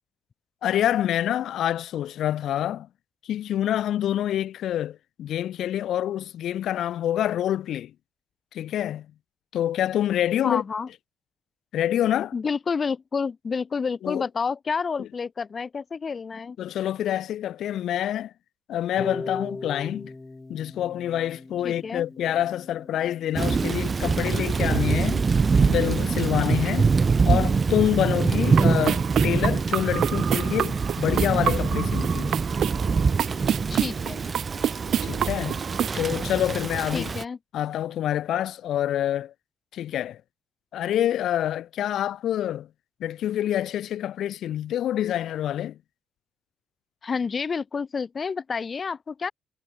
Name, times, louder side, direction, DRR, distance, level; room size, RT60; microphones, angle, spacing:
voice 1, 0.6-2.9 3.2-7.9 8.5-9.1 9.5-10.6 11.7-12.3 14.0-14.2 16.6-18.3 18.7-20.1 20.5-25.3 25.6-26.9 27.2-32.3 35.0-35.6 35.9-37.1 37.5-39.3 39.7-40.2 40.7-42.7 43.0-45.8, left 11 dB, 70° left, 1.0 m, -26 dB
voice 2, 10.4-10.9 12.3-16.6 21.6-22.1 33.7-34.2 36.9-37.4 47.0-49.3, left 5 dB, 40° left, 1.4 m, -29 dB
Harp, 19.0-25.0, left 2 dB, 20° left, 2.0 m, -40 dB
Thunder / Rain, 23.4-37.2, right 5 dB, 40° right, 1.0 m, -24 dB
sound 1, 28.4-36.0, right 10 dB, 65° right, 0.5 m, -29 dB
supercardioid pair, 65°, 0 cm